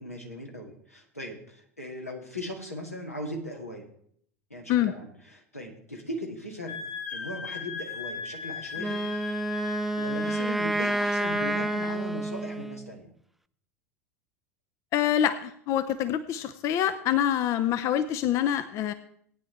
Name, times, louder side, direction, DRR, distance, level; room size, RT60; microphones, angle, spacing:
voice 1, 0.0-3.8 4.5-6.8 7.1-9.0 10.0-13.1, equal, 90° left, 0 dB, 2.2 m, -38 dB
Wind instrument woodwind instrument, 6.7-12.0, left 6 dB, 70° left, 2.4 m, -38 dB
Wind instrument woodwind instrument 2, 8.8-12.9, right 2 dB, ahead, 0.5 m, -29 dB
voice 2, 14.9-18.9, left 10 dB, 40° left, 12 dB, 0.7 m, -26 dB
18.0 x 9.7 x 3.3 m, 0.66 s
figure-of-eight pair, 75°, 8 cm